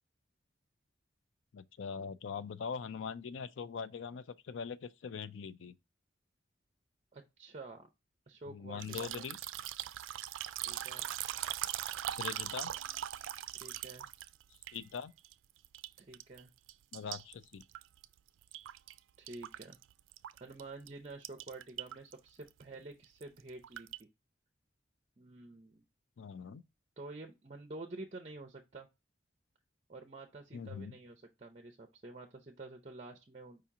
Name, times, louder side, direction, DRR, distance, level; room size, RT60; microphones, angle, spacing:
voice 1, 1.5-5.8 8.5-9.4 12.2-12.7 14.7-15.1 16.9-17.6 26.2-26.6 30.5-30.9, left 6 dB, 80° left, 0.4 m, -42 dB
voice 2, 7.1-7.9 8.3-9.2 10.7-11.1 13.6-14.1 16.0-16.5 19.2-19.8 20.4-24.1 25.2-25.8 27.0-28.9 29.9-33.6, right 2 dB, 35° right, 0.5 m, -49 dB
sound 1, 8.8-15.3 15.6-16.4 16.7-19.0 19.3-20.6 20.9-21.0 21.2-22.1 22.4-22.6 23.0-24.0, right 12 dB, 90° right, 0.3 m, -40 dB
5.0 x 2.9 x 3.5 m
head